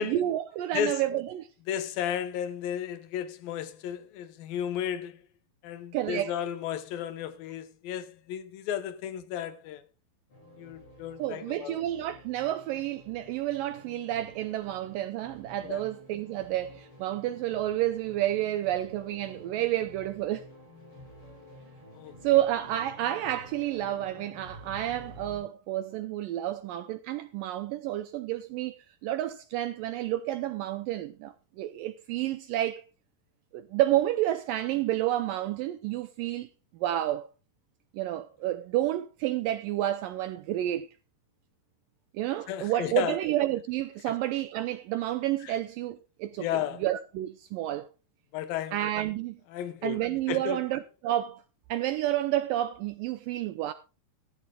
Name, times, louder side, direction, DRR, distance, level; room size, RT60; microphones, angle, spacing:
voice 1, 0.0-1.5 5.9-6.3 11.2-20.5 22.2-32.8 33.5-36.5 36.8-37.3 37.9-40.9 42.1-46.5 46.8-47.9 48.7-49.4 49.8-51.4 51.7-53.7, right 13 dB, 85° right, 1.9 m, -30 dB
voice 2, 1.7-5.2 5.6-9.8 10.6-11.8 15.6-15.8 21.9-22.1 42.5-43.2 44.1-44.2 45.4-45.6 46.4-46.8 48.3-48.8 49.5-50.0 50.3-50.6, left 10 dB, 70° left, 2.5 m, -33 dB
sound 1, 10.3-25.4, equal, 35° left, 8.4 m, -51 dB
15.5 x 13.5 x 2.3 m
omnidirectional pair, 4.6 m